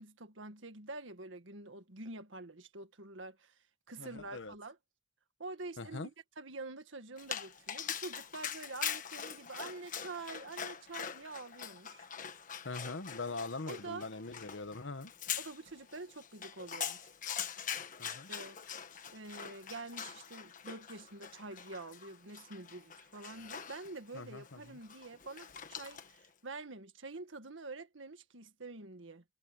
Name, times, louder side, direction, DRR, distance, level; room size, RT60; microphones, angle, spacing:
voice 1, 0.0-3.6 3.9-4.8 5.4-12.0 13.7-14.1 15.4-17.0 18.1-18.6 19.1-29.2, right 3 dB, 90° right, 1.8 m, -47 dB
voice 2, 4.0-4.5 5.8-6.1 12.6-15.1 18.0-18.3 24.1-24.8, left 3 dB, 75° left, 1.2 m, -42 dB
Dog, 7.2-26.3, left 8 dB, 45° left, 1.4 m, -43 dB
head